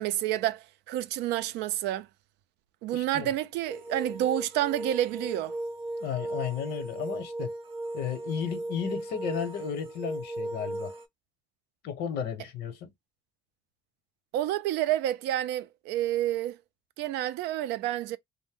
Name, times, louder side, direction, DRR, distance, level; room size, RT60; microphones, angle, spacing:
voice 1, 0.0-2.1 2.8-5.5 14.3-16.6 17.0-18.2, right 13 dB, 90° right, 0.4 m, -29 dB
voice 2, 2.9-3.3 6.0-7.5 7.9-10.9 11.8-12.9, left 8 dB, 80° left, 0.8 m, -34 dB
sound 1, 3.7-11.1, right 1 dB, 35° right, 0.7 m, -36 dB
2.6 x 2.1 x 3.4 m
cardioid pair, 110°, 17 cm